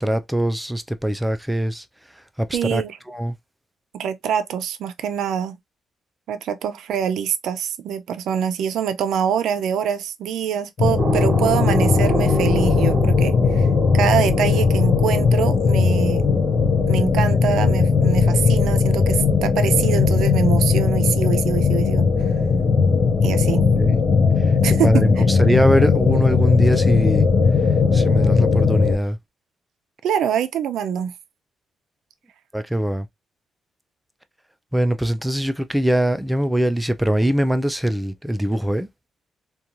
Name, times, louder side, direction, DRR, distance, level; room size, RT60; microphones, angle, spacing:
voice 1, 0.0-1.9 2.4-2.8 3.1-3.4 23.5-24.0 24.4-24.5 24.8-27.3 27.9-29.2 32.5-33.1 34.7-38.9, equal, 5° right, 0.3 m, -22 dB
voice 2, 2.5-2.9 3.9-5.6 6.3-13.7 13.9-16.3 16.9-22.1 23.2-23.7 24.6-25.0 30.0-31.1, right 8 dB, 90° right, 0.4 m, -24 dB
sound 1, 10.8-29.0, left 5 dB, 50° left, 0.7 m, -18 dB
sound 2, 11.0-16.8, right 2 dB, 40° right, 0.6 m, -29 dB
2.9 x 2.3 x 2.4 m
cardioid pair, 120°, 0 cm